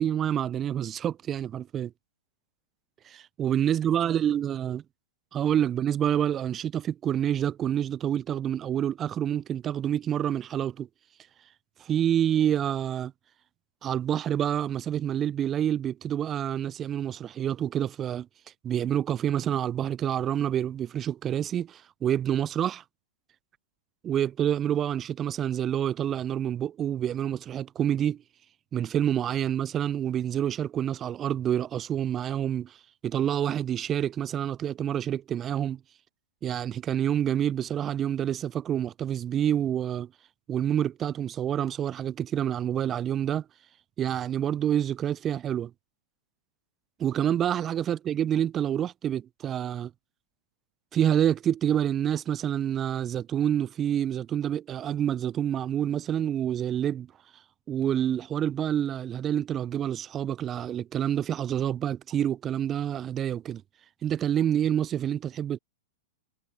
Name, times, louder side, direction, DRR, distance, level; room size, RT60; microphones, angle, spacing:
voice 1, 0.0-1.9 3.1-4.8 5.3-10.9 11.8-13.1 13.8-18.3 18.6-22.8 24.0-28.2 28.7-32.8 33.0-35.8 36.4-40.1 40.5-43.4 44.0-45.7 47.0-49.9 50.9-57.1 57.7-63.6 64.0-65.6, right 10 dB, 25° right, 0.5 m, -27 dB
figure-of-eight pair, 100°, 0 cm